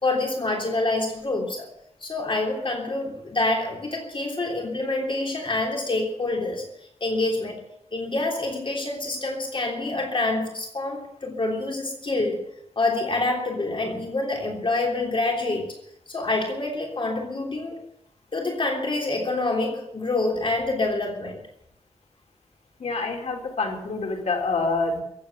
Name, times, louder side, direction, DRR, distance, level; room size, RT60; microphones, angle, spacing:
voice 1, 0.0-1.7 2.0-6.7 7.0-7.6 7.9-12.5 12.7-15.8 16.1-17.8 18.3-21.4, left 2 dB, 50° left, 1 dB, 3.2 m, -26 dB
voice 2, 22.8-25.0, left 3 dB, 80° left, 1 dB, 4.4 m, -26 dB
15.5 x 8.5 x 10.0 m, 0.77 s
wide cardioid pair, 85°, 11 cm